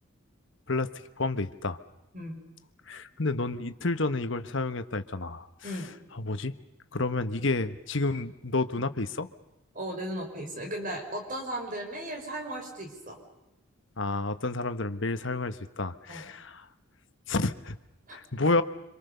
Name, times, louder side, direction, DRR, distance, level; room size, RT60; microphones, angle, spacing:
voice 1, 1.2-1.8 2.9-5.7 6.1-6.6 6.9-9.3 14.0-16.6 17.3-17.7 18.1-18.6, left 3 dB, 55° left, 11 dB, 1.2 m, -30 dB
voice 2, 9.7-13.2 16.1-16.2 18.1-18.2, right 1 dB, 40° right, 3 dB, 5.6 m, -36 dB
27.0 x 26.0 x 6.9 m, 0.93 s
head